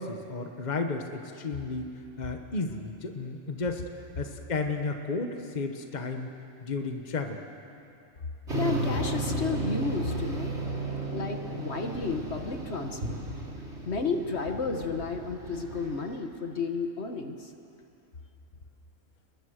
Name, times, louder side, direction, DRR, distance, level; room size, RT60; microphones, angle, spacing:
voice 1, 0.0-6.3 6.6-7.4, left 3 dB, 35° left, 4 dB, 1.4 m, -33 dB
voice 2, 8.5-10.6 11.1-13.2 13.9-17.5, left 4 dB, 60° left, 5 dB, 1.7 m, -32 dB
sound 1, 8.5-16.2, right 2 dB, 60° right, 3.7 m, -34 dB
30.0 x 21.5 x 6.5 m, 2.7 s
omnidirectional pair, 1.3 m